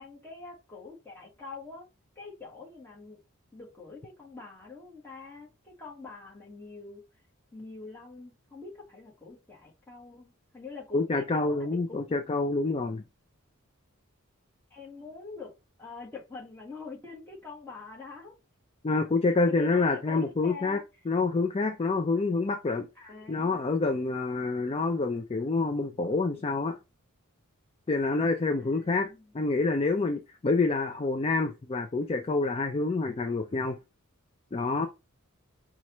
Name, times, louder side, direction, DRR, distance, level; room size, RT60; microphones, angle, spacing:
voice 1, 0.0-1.9 2.1-3.2 3.5-7.0 7.5-12.0 14.7-15.5 15.8-18.3 19.4-20.8 22.9-23.8 28.6-29.2, left 4 dB, 10° left, 1.5 m, -45 dB
voice 2, 10.9-13.0 18.8-20.8 21.1-26.8 27.9-29.1 29.3-33.8 34.5-34.9, left 3 dB, 25° left, 0.4 m, -27 dB
5.4 x 2.4 x 3.0 m
head